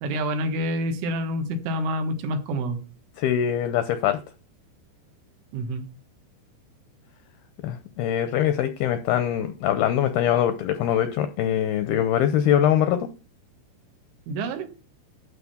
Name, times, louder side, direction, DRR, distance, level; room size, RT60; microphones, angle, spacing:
voice 1, 0.0-2.8 5.5-5.9 14.3-14.7, right 1 dB, 90° right, 6 dB, 3.9 m, -27 dB
voice 2, 3.2-4.2 7.6-13.1, left 10 dB, 85° left, 10 dB, 2.2 m, -23 dB
12.0 x 4.7 x 7.1 m, 0.34 s
omnidirectional pair, 5.3 m